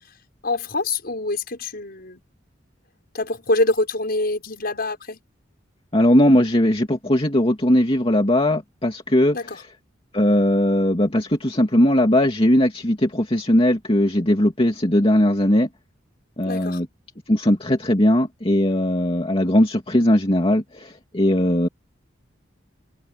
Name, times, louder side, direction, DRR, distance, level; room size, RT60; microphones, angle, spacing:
voice 1, 0.4-2.2 3.1-5.2 9.3-9.6 16.4-16.8, left 2 dB, 55° left, 6.0 m, -25 dB
voice 2, 5.9-9.4 10.1-15.7 16.4-16.9 17.3-21.7, left 1 dB, 30° left, 2.6 m, -19 dB
head